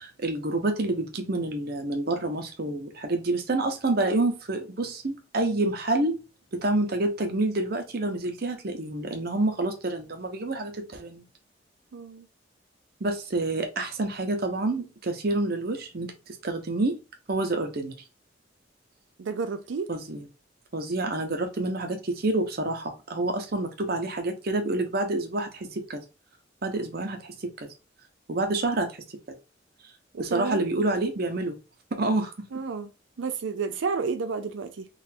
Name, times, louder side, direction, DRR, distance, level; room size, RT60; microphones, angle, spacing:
voice 1, 0.0-6.2 6.5-11.2 13.0-17.0 17.3-17.9 19.9-20.2 20.7-26.0 26.6-27.7 28.3-28.9 30.2-31.6 31.9-32.3, right 2 dB, 55° right, 0.8 m, -28 dB
voice 2, 11.9-12.3 19.2-19.9 30.1-30.6 32.5-32.9 33.2-34.9, right 5 dB, 85° right, 0.5 m, -31 dB
4.0 x 2.5 x 2.6 m
head